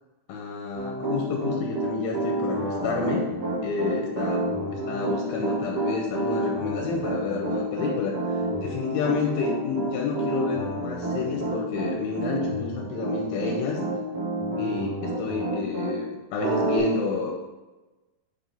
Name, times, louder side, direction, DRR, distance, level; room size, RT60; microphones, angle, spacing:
voice 1, 0.3-3.3 3.6-8.1 8.6-13.8 14.6-17.4, left 4 dB, 85° left, 0 dB, 2.7 m, -30 dB
Piano, 0.8-15.9 16.4-16.8, right 2 dB, 35° right, 2.3 m, -29 dB
9.1 x 4.4 x 3.6 m, 1.1 s
omnidirectional pair, 4.3 m